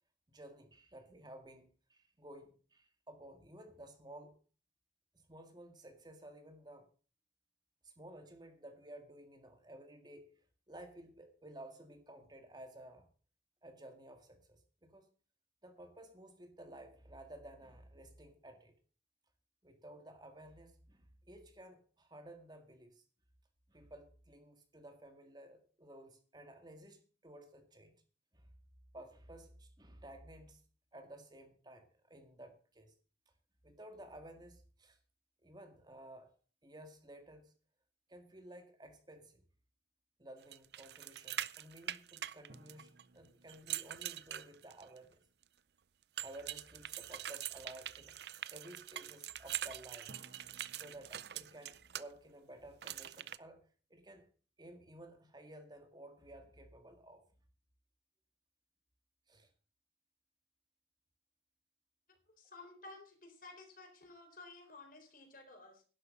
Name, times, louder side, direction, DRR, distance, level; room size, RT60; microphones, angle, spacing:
voice 1, 0.3-4.3 5.1-6.9 7.8-13.1 13.6-15.1 15.6-18.7 19.6-23.0 23.7-27.9 28.3-28.5 28.9-30.6 30.9-32.9 33.6-35.0 35.4-36.3 36.6-37.5 38.1-39.4 40.2-45.2 46.2-48.2 48.5-50.2 50.7-53.6 53.9-54.3 54.6-57.2 59.3-59.5, right 1 dB, 25° right, 6 dB, 1.8 m, -54 dB
sound 1, 40.5-43.0 43.5-45.0 46.2-52.0 52.8-53.4, right 11 dB, 65° right, 0.5 m, -43 dB
sound 2, 42.5-45.9 50.1-53.4, right 2 dB, 85° right, 1.4 m, -63 dB
voice 2, 62.4-65.8, left 3 dB, 50° left, 4 dB, 4.2 m, -54 dB
11.5 x 11.0 x 5.5 m, 0.39 s
head